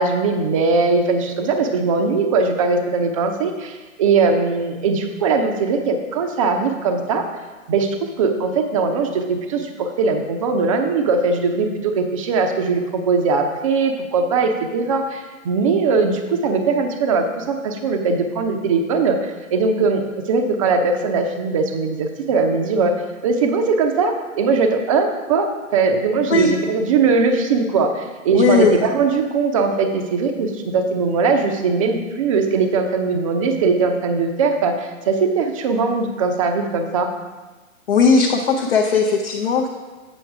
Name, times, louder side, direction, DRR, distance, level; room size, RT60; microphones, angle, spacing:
voice 1, 0.0-7.2 7.7-20.0 20.3-22.9 23.2-37.1, right 4 dB, 25° right, 5 dB, 0.6 m, -20 dB
voice 2, 28.3-28.8 37.9-39.7, left 5 dB, 45° left, 1 dB, 0.7 m, -17 dB
8.0 x 5.7 x 4.7 m, 1.3 s
figure-of-eight pair, 135°, 42 cm